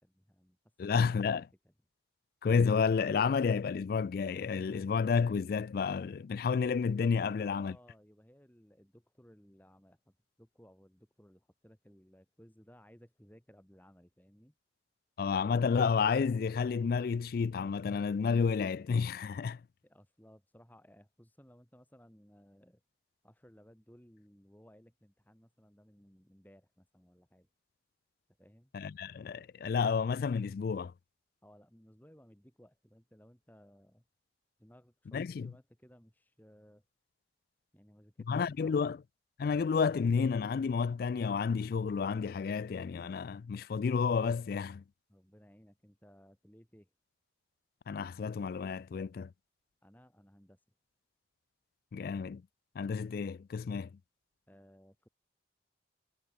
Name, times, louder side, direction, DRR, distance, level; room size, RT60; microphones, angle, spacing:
voice 1, 0.0-1.4 1.6-1.7 7.2-14.5 19.8-22.8 23.2-27.5 28.4-28.7 31.4-34.0 34.6-36.8 37.7-38.8 45.1-46.9 49.8-50.6 54.5-55.1, equal, 10° left, 4.0 m, -60 dB
voice 2, 0.8-1.4 2.4-7.8 15.2-19.6 28.7-30.9 35.1-35.5 38.3-39.0 39.4-44.8 47.9-49.3 51.9-52.4 52.8-53.9, left 5 dB, 50° left, 0.3 m, -30 dB
head